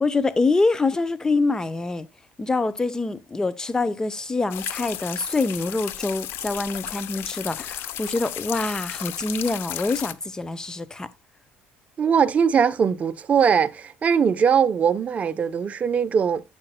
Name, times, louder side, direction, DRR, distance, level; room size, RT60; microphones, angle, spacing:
voice 1, 0.0-2.1 2.4-11.1, left 3 dB, 15° left, 0.8 m, -25 dB
sound 1, 4.5-10.1, left 12 dB, 65° left, 0.7 m, -34 dB
voice 2, 12.0-16.4, right 7 dB, 35° right, 0.7 m, -21 dB
12.0 x 7.8 x 2.2 m
cardioid pair, 115°, 4 cm